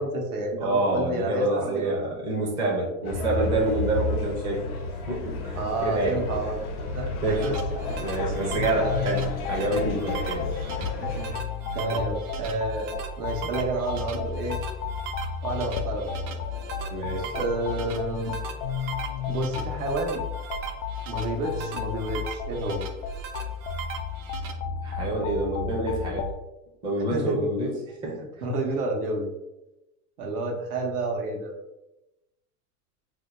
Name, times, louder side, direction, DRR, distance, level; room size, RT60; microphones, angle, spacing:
voice 1, 0.0-2.0 3.0-3.2 5.5-7.9 8.4-9.2 10.8-11.2 11.7-14.6 15.4-16.1 17.3-18.3 19.3-20.2 21.1-22.9 27.0-27.5 28.4-29.3 30.2-31.6, right 2 dB, 80° right, 1 dB, 1.0 m, -30 dB
voice 2, 0.6-4.6 5.1-6.2 7.2-7.5 8.0-9.2 9.5-10.5 11.9-12.0 16.9-17.4 24.8-26.3 26.8-27.8 28.0-28.2, right 2 dB, 10° right, -2 dB, 0.4 m, -27 dB
sound 1, 3.0-11.4, left 2 dB, 85° left, 0.8 m, -32 dB
sound 2, 7.1-24.5, right 6 dB, 55° right, 0.6 m, -40 dB
sound 3, 7.2-26.3, left 5 dB, 55° left, 0.5 m, -33 dB
2.7 x 2.2 x 4.1 m, 0.94 s
supercardioid pair, 135°, 45 cm